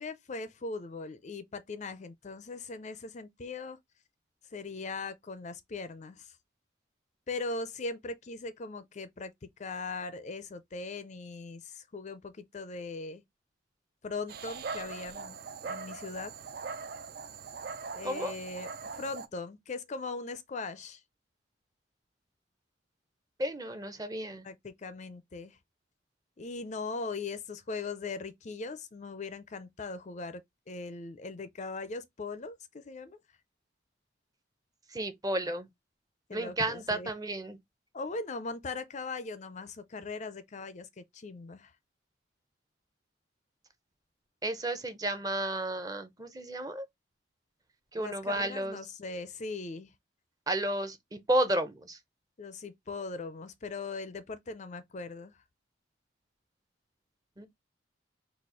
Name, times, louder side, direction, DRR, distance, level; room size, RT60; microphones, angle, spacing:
voice 1, 0.0-3.8 4.5-6.3 7.3-9.3 9.6-13.2 14.0-15.4 15.6-16.3 17.9-21.0 24.4-25.6 26.4-30.4 30.7-33.2 36.3-37.1 37.9-41.7 48.0-49.9 52.4-55.3, left 3 dB, 40° left, 0.5 m, -40 dB
Dog, 14.3-19.3, right 5 dB, 55° right, 0.5 m, -41 dB
voice 2, 18.0-18.3 23.4-24.5 34.9-35.7 36.3-37.6 44.4-46.9 47.9-48.8 50.5-52.0 57.4-57.5, right 1 dB, 20° right, 0.7 m, -32 dB
4.2 x 2.4 x 4.7 m
head